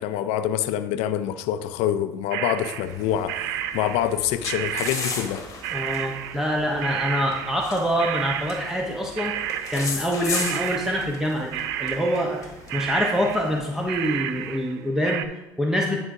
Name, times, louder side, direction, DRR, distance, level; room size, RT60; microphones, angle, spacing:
voice 1, 0.0-3.3 3.7-5.4, left 10 dB, 65° left, 11 dB, 0.5 m, -25 dB
sound 1, 2.3-3.0 3.3-5.4 5.6-14.8 15.0-15.3, right 11 dB, 80° right, 0.4 m, -32 dB
sound 2, 2.7-14.5, left 3 dB, 30° left, 1.5 m, -37 dB
voice 2, 5.7-9.3 9.7-16.0, equal, 5° right, -1 dB, 0.9 m, -25 dB
10.0 x 4.8 x 2.7 m, 1.0 s
hypercardioid pair, 80°, 11 cm